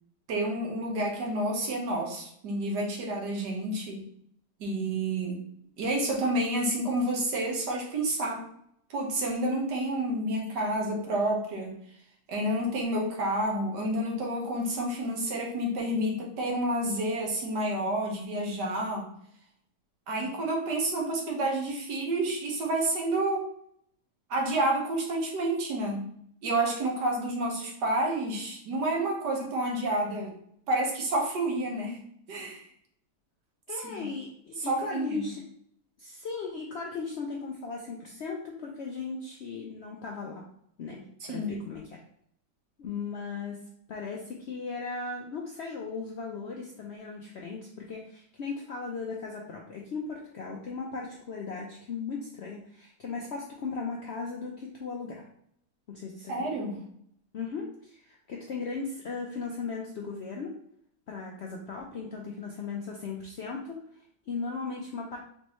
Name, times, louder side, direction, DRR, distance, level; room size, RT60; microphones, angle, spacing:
voice 1, 0.3-4.1 4.6-5.4 5.8-8.5 8.9-11.8 12.3-19.1 20.1-23.5 24.3-26.0 26.4-30.3 30.7-32.0 32.3-32.6 33.9-34.1 34.7-35.3 41.3-41.6 56.3-56.8, right 1 dB, 80° right, 0 dB, 1.6 m, -29 dB
voice 2, 33.7-35.4 36.0-40.4 40.8-42.0 42.8-43.6 43.9-55.2 55.9-56.5 57.3-60.5 61.1-65.2, left 4 dB, 70° left, -1 dB, 0.6 m, -37 dB
4.4 x 3.2 x 3.0 m, 0.69 s
omnidirectional pair, 1.8 m